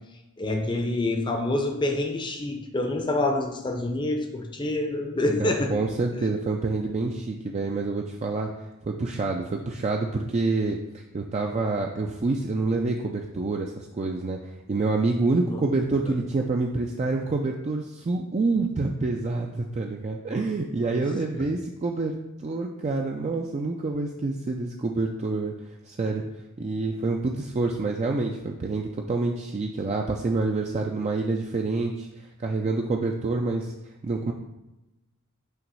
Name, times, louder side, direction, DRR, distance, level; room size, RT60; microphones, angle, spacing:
voice 1, 0.4-5.7 15.4-15.6, left 2 dB, 20° left, 3 dB, 0.6 m, -27 dB
voice 2, 5.4-8.5 8.8-25.5 25.8-26.2 26.6-33.7 34.0-34.3, right 3 dB, 30° right, 1 dB, 0.4 m, -27 dB
5.7 x 3.0 x 5.4 m, 0.99 s
head